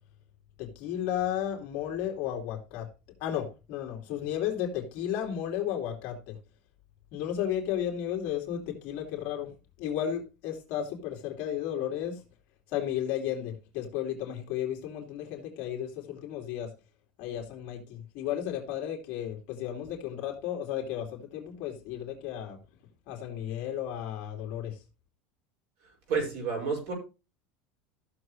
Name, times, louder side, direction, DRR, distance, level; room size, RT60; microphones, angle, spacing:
voice 1, 0.6-2.9 3.2-6.4 7.1-9.5 9.8-12.2 12.7-16.7 17.2-22.6 23.1-24.8, left 10 dB, 45° left, 2.9 m, -33 dB
voice 2, 25.8-26.9, right 5 dB, 50° right, 5.9 m, -31 dB
14.5 x 6.9 x 3.2 m
cardioid pair, 175°, 4 cm